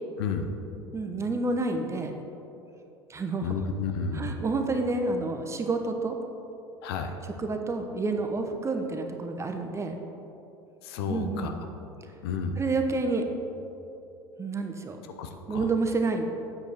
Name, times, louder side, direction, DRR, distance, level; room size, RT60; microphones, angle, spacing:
voice 1, 0.2-0.5 3.4-4.4 6.8-7.1 10.8-11.5 12.2-12.6 15.2-15.7, left 5 dB, 65° left, 6 dB, 0.8 m, -31 dB
voice 2, 0.9-2.2 3.1-3.6 4.1-6.2 7.4-10.0 11.1-11.6 12.6-13.2 14.4-15.0 15.5-16.2, right 3 dB, 20° right, 5 dB, 1.0 m, -29 dB
8.7 x 7.7 x 4.5 m, 2.9 s
hypercardioid pair, 80°, 14 cm